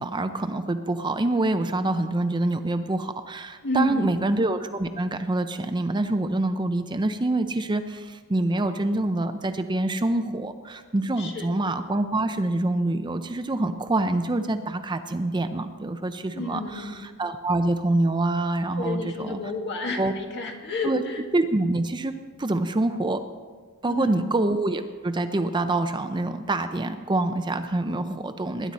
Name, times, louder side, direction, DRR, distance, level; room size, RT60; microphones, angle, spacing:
voice 1, 0.0-19.4 20.0-20.1 20.8-21.0 21.3-22.1 22.4-23.2 23.8-28.7, right 2 dB, 20° right, 9 dB, 0.5 m, -26 dB
voice 2, 3.6-4.2 11.2-11.5 16.3-17.0 18.8-21.2 23.9-24.4, left 2 dB, 55° left, 2 dB, 1.9 m, -30 dB
20.0 x 10.5 x 4.2 m, 1.5 s
head